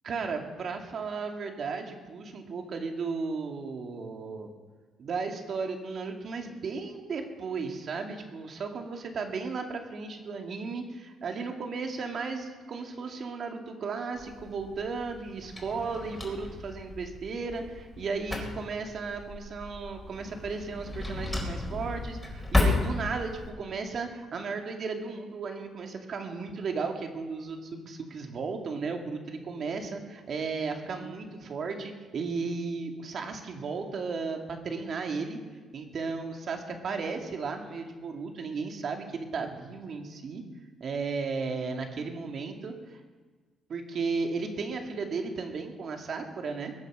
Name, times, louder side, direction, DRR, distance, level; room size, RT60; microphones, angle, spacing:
voice 1, 0.0-4.5 5.0-35.4 35.7-40.4 40.8-43.0 43.7-46.7, right 4 dB, 55° right, 3 dB, 2.4 m, -35 dB
Drawer open or close, 14.1-23.5, left 2 dB, 5° left, 4.2 m, -33 dB
21.0 x 8.0 x 6.3 m, 1.4 s
cardioid pair, 90°, 0 cm